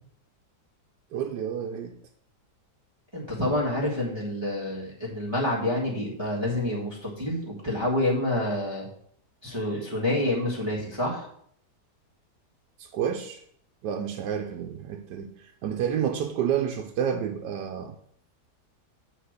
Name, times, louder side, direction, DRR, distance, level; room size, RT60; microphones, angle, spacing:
voice 1, 1.1-2.0 12.8-13.4 13.8-18.0, right 8 dB, 80° right, 1.3 m, -30 dB
voice 2, 3.1-8.9 9.4-11.3, left 1 dB, 15° right, 1.6 m, -28 dB
8.1 x 4.2 x 6.5 m
omnidirectional pair, 1.8 m